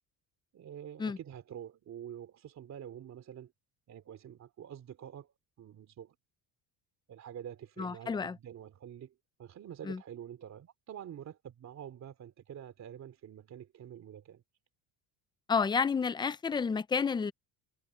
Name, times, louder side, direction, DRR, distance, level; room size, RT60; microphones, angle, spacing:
voice 1, 0.5-3.5 3.9-6.2 7.1-14.4, right 9 dB, 40° right, 2.9 m, -47 dB
voice 2, 7.8-8.4 9.8-10.0 15.5-17.3, left 5 dB, 10° left, 0.3 m, -30 dB
cardioid pair, 150°, 42 cm